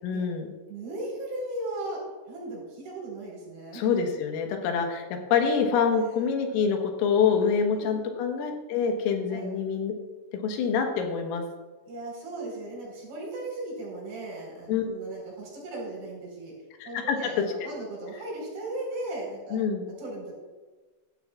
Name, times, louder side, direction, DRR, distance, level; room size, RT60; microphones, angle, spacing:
voice 1, 0.0-0.5 3.7-5.1 5.3-9.9 10.4-11.4 14.7-14.9 16.8-17.2 17.6-17.7 19.5-19.8, left 6 dB, 85° left, 3 dB, 4.0 m, -26 dB
voice 2, 0.7-2.0 2.3-3.8 7.7-8.0 9.3-9.6 11.9-16.5 16.8-19.6 20.0-20.3, right 2 dB, 65° right, -3 dB, 6.6 m, -37 dB
16.5 x 13.0 x 2.4 m, 1.3 s
omnidirectional pair, 5.8 m